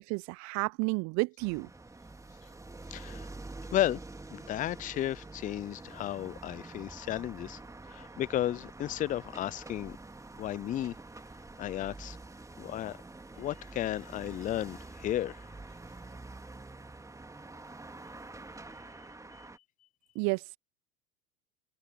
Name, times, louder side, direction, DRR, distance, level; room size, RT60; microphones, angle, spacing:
voice 1, 0.0-1.7 20.1-20.4, right 30 dB, 40° right, 0.9 m, -31 dB
sound 1, 1.4-19.6, right 2 dB, 5° right, 2.3 m, -47 dB
voice 2, 2.9-3.3 3.7-4.0 4.3-7.6 7.9-10.0 10.4-10.9 11.6-12.2 12.6-13.0 13.4-15.4, left 12 dB, 20° left, 0.6 m, -33 dB
figure-of-eight pair, 85°, 42 cm